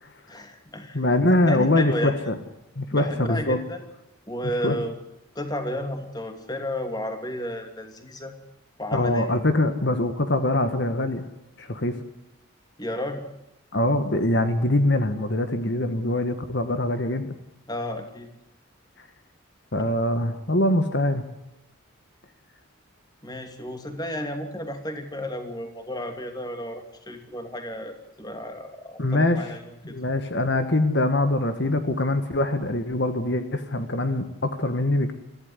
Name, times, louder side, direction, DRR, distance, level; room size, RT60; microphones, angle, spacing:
voice 1, 0.3-1.0 1.5-2.1 2.9-3.8 4.3-4.9 5.3-8.3 8.8-9.3 12.8-13.2 17.7-18.3 23.2-29.6 29.9-30.0, left 1 dB, 20° left, 6 dB, 2.8 m, -32 dB
voice 2, 0.9-2.4 2.8-3.6 4.6-4.8 8.9-11.2 11.6-11.9 13.7-17.3 19.7-21.2 29.0-29.5 29.9-35.1, left 1 dB, 55° left, 8 dB, 1.6 m, -23 dB
23.5 x 15.5 x 9.6 m, 0.91 s
head